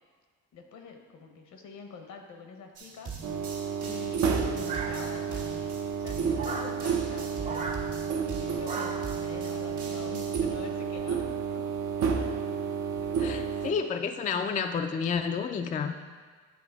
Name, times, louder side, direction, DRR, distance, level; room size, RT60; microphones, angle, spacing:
voice 1, 0.5-3.1 3.8-7.5 8.3-11.7 12.5-12.6 13.0-13.5, left 4 dB, 75° left, 3 dB, 1.0 m, -46 dB
sound 1, 2.8-10.4, right 5 dB, 85° right, 1.6 m, -42 dB
sound 2, 3.2-13.7, right 6 dB, 70° right, 0.7 m, -31 dB
sound 3, 4.7-5.4 6.3-6.8 7.4-7.8 8.6-9.2, right 4 dB, 25° right, 0.7 m, -36 dB
voice 2, 13.2-16.0, left 6 dB, 25° left, 6 dB, 0.3 m, -30 dB
9.4 x 3.3 x 4.6 m, 1.5 s
cardioid pair, 90°, 30 cm